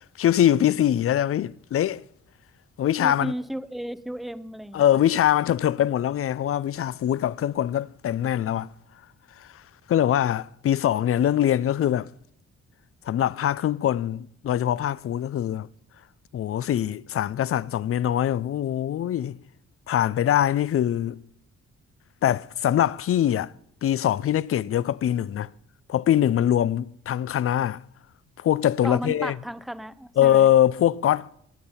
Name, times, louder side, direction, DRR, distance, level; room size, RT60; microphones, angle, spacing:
voice 1, 0.0-2.0 2.8-3.3 4.7-8.7 9.9-12.1 13.1-15.7 16.3-19.4 19.9-21.2 22.2-23.5 23.8-25.5 25.9-27.8 28.4-29.4 30.2-31.3, left 11 dB, 50° left, 0.4 m, -23 dB
voice 2, 3.0-5.0 28.8-30.5, equal, ahead, 0.6 m, -34 dB
21.5 x 8.6 x 5.6 m
cardioid pair, 95°, 29 cm